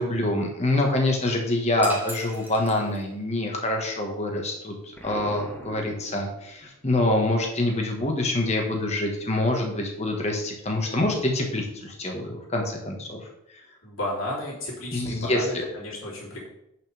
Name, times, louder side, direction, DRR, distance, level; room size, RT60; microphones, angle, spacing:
voice 1, 0.0-4.7 5.0-13.2 14.9-15.5, left 1 dB, 35° left, 1 dB, 1.6 m, -26 dB
sound 1, 1.8-3.3, right 1 dB, 10° right, 1.1 m, -39 dB
Explosion, 5.0-6.8, equal, 10° left, 1.5 m, -41 dB
voice 2, 13.8-16.5, left 1 dB, 80° left, -5 dB, 3.5 m, -33 dB
10.0 x 6.2 x 3.5 m, 0.81 s
head